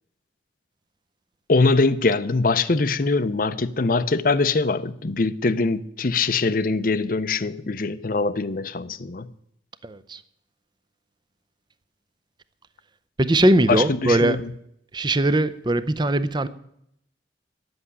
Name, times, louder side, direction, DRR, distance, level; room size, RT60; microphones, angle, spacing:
voice 1, 1.5-9.3 13.7-14.5, left 3 dB, 50° left, 0.6 m, -22 dB
voice 2, 9.8-10.2 13.2-14.4 14.9-16.5, right 1 dB, 25° right, 0.6 m, -20 dB
10.5 x 7.9 x 9.8 m
head